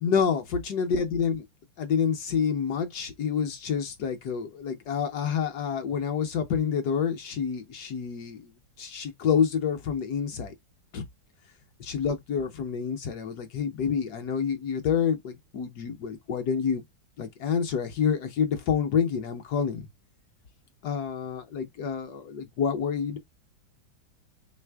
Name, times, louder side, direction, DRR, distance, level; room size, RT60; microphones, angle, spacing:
voice 1, 0.0-1.4 1.8-8.5 8.8-10.5 10.9-11.0 11.8-16.8 17.2-19.9 20.8-23.2, left 7 dB, 65° left, 1.1 m, -28 dB
3.3 x 3.2 x 3.3 m
omnidirectional pair, 2.1 m